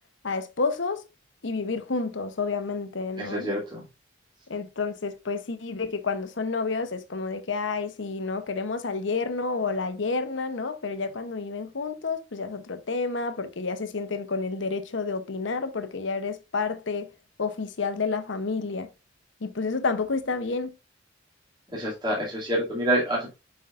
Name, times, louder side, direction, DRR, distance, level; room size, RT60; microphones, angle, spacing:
voice 1, 0.2-1.0 1.4-3.5 4.5-17.1 17.4-18.9 19.4-20.7, left 4 dB, 75° left, 0.8 m, -30 dB
voice 2, 3.2-3.8 21.7-23.3, right 1 dB, 25° right, 2.6 m, -27 dB
7.6 x 5.4 x 2.5 m
head